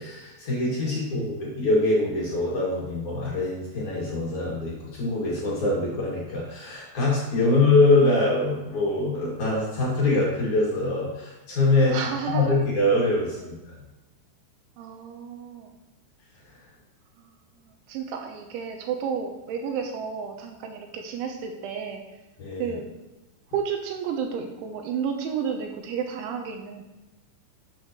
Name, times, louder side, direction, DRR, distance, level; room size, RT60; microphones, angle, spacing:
voice 1, 0.0-11.9 12.3-13.8 22.4-22.8, left 2 dB, 45° left, -6 dB, 3.1 m, -24 dB
voice 2, 0.9-1.3 7.4-7.5 11.9-12.6 13.4-13.5 14.8-15.7 17.2-17.3 17.6-22.0 22.6-22.9 23.5-26.8, right 7 dB, 80° right, 4 dB, 3.1 m, -32 dB
12.5 x 8.2 x 3.1 m, 1.0 s
omnidirectional pair, 5.7 m